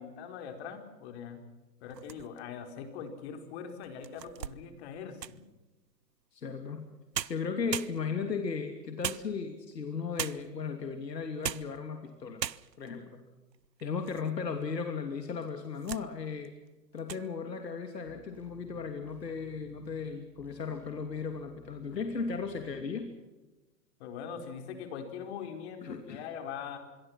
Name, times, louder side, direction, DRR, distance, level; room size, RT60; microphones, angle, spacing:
voice 1, 0.0-1.4 1.8-5.4 24.0-26.8, left 7 dB, 40° left, 6 dB, 4.6 m, -42 dB
sound 1, 1.8-2.6 3.2-3.3 3.8-5.5 6.8-6.9 7.1-8.4 9.0-9.7 10.2-10.6 11.2-11.8 12.1-12.2 12.4-13.0 13.5-14.3 14.6-14.7 15.4-16.1 16.4-16.7 17.0-17.3, right 9 dB, 90° right, 0.8 m, -39 dB
voice 2, 6.3-6.9 7.3-12.4 12.8-13.2 13.8-16.5 16.9-23.1 25.8-26.2, left 5 dB, 80° left, 6 dB, 3.0 m, -36 dB
sound 2, 18.0-22.8, left 1 dB, 5° left, 6.2 m, -57 dB
26.5 x 22.5 x 5.9 m, 1.1 s
hypercardioid pair, 130°, 49 cm